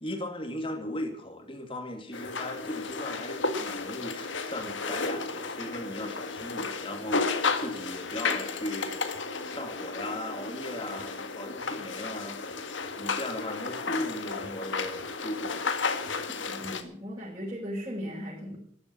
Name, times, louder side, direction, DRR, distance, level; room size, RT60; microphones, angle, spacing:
voice 1, 0.0-12.4 13.0-15.7, left 1 dB, 30° left, 5 dB, 2.6 m, -37 dB
UP Library Study Centre Ambience, 2.1-16.8, left 4 dB, 85° left, 1.7 m, -33 dB
voice 2, 16.5-18.6, equal, 25° right, -7 dB, 5.0 m, -37 dB
14.0 x 11.0 x 8.6 m, 0.63 s
head